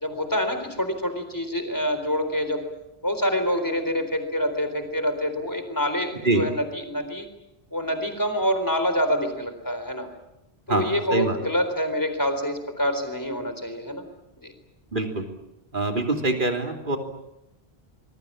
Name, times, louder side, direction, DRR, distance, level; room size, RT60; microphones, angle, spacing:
voice 1, 0.0-2.6 3.0-7.3 7.7-10.1 10.7-14.0 14.4-14.5, equal, 20° left, 8 dB, 4.1 m, -26 dB
voice 2, 10.7-11.4 14.9-15.2 15.7-17.0, right 2 dB, 50° right, 4 dB, 3.4 m, -24 dB
25.0 x 22.0 x 8.8 m, 0.88 s
omnidirectional pair, 1.1 m